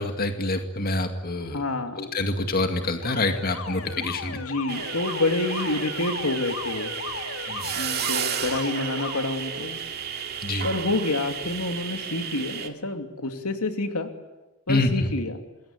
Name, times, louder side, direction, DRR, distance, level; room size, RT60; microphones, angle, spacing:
voice 1, 0.0-1.6 1.9-4.4 7.5-7.8 10.4-10.7 14.7-15.1, left 2 dB, 45° left, 6 dB, 2.2 m, -26 dB
voice 2, 1.4-2.0 4.3-6.9 7.7-9.8 10.6-14.1 14.7-15.4, left 2 dB, 90° left, 6 dB, 2.8 m, -28 dB
Alarm, 2.7-9.2, left 5 dB, 70° left, 2.3 m, -37 dB
sound 1, 4.7-12.7, right 8 dB, 45° right, 2.4 m, -32 dB
27.0 x 21.5 x 9.9 m, 1.0 s
head